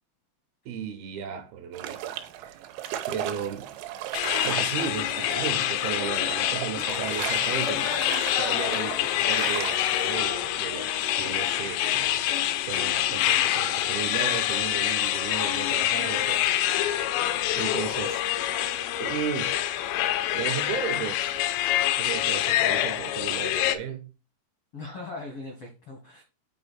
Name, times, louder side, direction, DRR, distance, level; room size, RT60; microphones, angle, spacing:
voice 1, 0.7-2.1 2.4-2.7 3.1-3.7 4.4-7.9 8.4-12.3 12.6-16.5 16.9-18.2 19.0-19.6 20.3-21.3 22.0-24.1, right 8 dB, 75° right, 2.5 m, -35 dB
sound 1, 1.7-10.2, right 11 dB, 90° right, 2.9 m, -37 dB
sound 2, 4.1-23.8, left 12 dB, 85° left, 2.9 m, -26 dB
voice 2, 6.7-7.1 7.7-9.2 22.6-22.7 24.7-26.2, left 2 dB, 70° left, 1.3 m, -41 dB
8.8 x 4.5 x 4.3 m
omnidirectional pair, 5.0 m